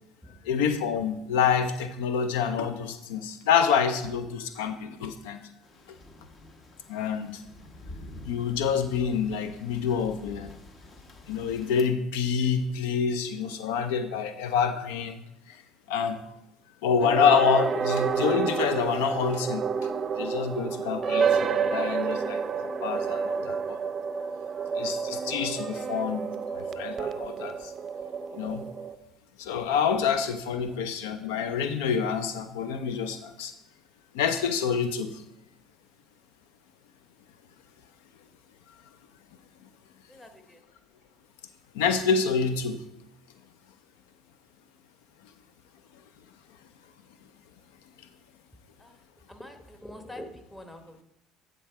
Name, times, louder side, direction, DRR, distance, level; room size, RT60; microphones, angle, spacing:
voice 1, 0.4-5.4 6.9-7.4 8.2-10.5 11.3-15.2 15.5-15.6 15.9-16.2 16.8-19.7 20.2-23.8 24.8-27.7 28.3-28.6 29.4-33.5 34.1-35.2 41.7-42.8, left 6 dB, 80° left, 10 dB, 0.4 m, -27 dB
sound 1, 5.6-11.8, left 1 dB, 40° left, 1.1 m, -48 dB
sound 2, 17.0-28.9, right 6 dB, 40° right, 0.4 m, -29 dB
voice 2, 40.1-40.6 48.8-49.0 49.3-51.0, left 1 dB, 10° left, 6 dB, 1.1 m, -45 dB
9.9 x 3.7 x 4.7 m, 0.82 s
hypercardioid pair, 70°, 0 cm